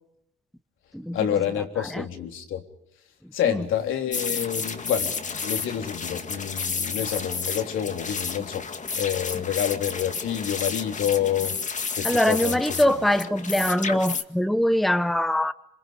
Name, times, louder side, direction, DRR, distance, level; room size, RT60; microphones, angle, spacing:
voice 1, 1.1-2.6 3.3-8.7 8.9-11.6 11.9-12.8, left 9 dB, 80° left, 3.6 m, -28 dB
sound 1, 4.1-14.2, left 5 dB, 40° left, 2.0 m, -31 dB
voice 2, 12.0-15.5, left 1 dB, ahead, 1.0 m, -23 dB
27.0 x 26.0 x 5.3 m
cardioid pair, 90°, 20 cm